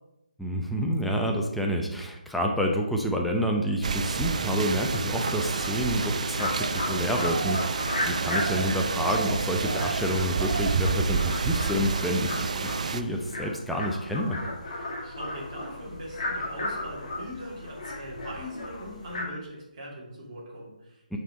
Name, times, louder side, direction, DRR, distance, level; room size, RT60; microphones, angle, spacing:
voice 1, 0.4-14.4 21.1-21.2, equal, ahead, 0 dB, 0.6 m, -28 dB
sound 1, 3.8-13.0, right 4 dB, 50° right, 0.5 m, -29 dB
sound 2, 4.9-19.2, left 1 dB, 45° left, 2.0 m, -36 dB
voice 2, 14.7-21.2, equal, 35° right, -5 dB, 2.6 m, -41 dB
7.4 x 5.5 x 4.0 m, 0.94 s
figure-of-eight pair, 150°, 5 cm